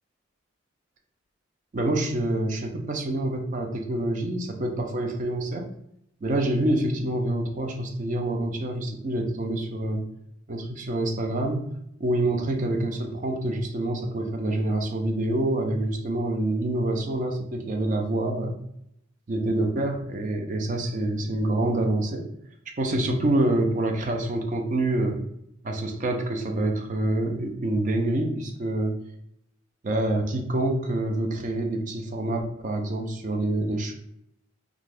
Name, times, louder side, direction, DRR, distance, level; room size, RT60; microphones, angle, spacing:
voice 1, 1.7-5.7 6.2-10.0 10.5-11.7 12.0-18.6 19.3-22.3 22.8-25.2 25.6-29.0 29.8-33.9, right 1 dB, 40° right, 3 dB, 0.4 m, -26 dB
2.5 x 2.3 x 3.3 m, 0.76 s
head